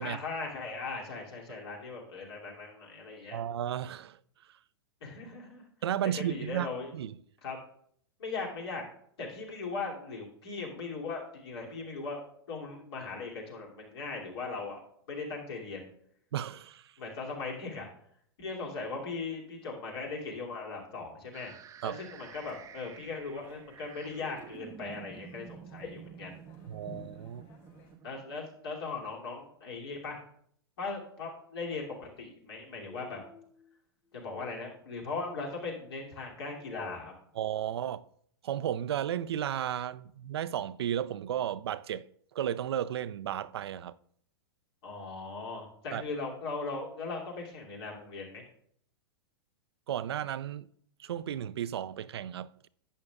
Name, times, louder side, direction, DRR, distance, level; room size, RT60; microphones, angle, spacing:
voice 1, 0.0-3.4 5.0-5.7 6.1-6.9 7.4-7.6 8.2-8.8 9.2-12.2 12.5-14.8 15.1-15.9 17.0-17.9 18.4-21.5 21.8-26.4 28.0-30.2 30.8-33.2 34.1-37.1 44.8-48.4, left 4 dB, 70° left, 2.6 m, -39 dB
voice 2, 3.3-4.2 4.5-4.6 5.8-7.2 16.3-16.9 21.8-22.0 26.7-27.5 37.3-38.1 38.4-42.0 42.3-44.0 45.9-46.0 49.9-50.7 51.0-52.7, right 10 dB, 75° right, 0.4 m, -34 dB
sound 1, 21.3-29.2, right 8 dB, 25° right, 0.5 m, -50 dB
sound 2, 22.1-27.9, left 6 dB, 50° left, 3.5 m, -57 dB
sound 3, 32.3-32.5 32.9-33.7 34.2-34.5 35.0-35.6 36.4-37.1, left 1 dB, 10° left, 1.1 m, -51 dB
11.0 x 8.3 x 2.3 m
hypercardioid pair, 105°, 13 cm